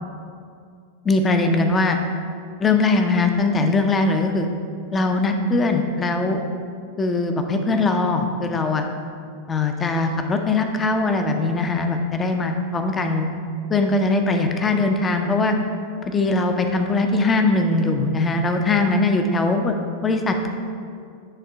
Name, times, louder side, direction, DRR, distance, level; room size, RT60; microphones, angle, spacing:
voice 1, 1.0-2.0 2.6-4.5 4.9-6.4 7.0-8.9 9.5-13.3 13.7-15.6 16.1-19.8 20.0-20.5, left 3 dB, 20° left, 5 dB, 0.6 m, -21 dB
9.0 x 3.6 x 5.4 m, 2.3 s
figure-of-eight pair, 90°, 0 cm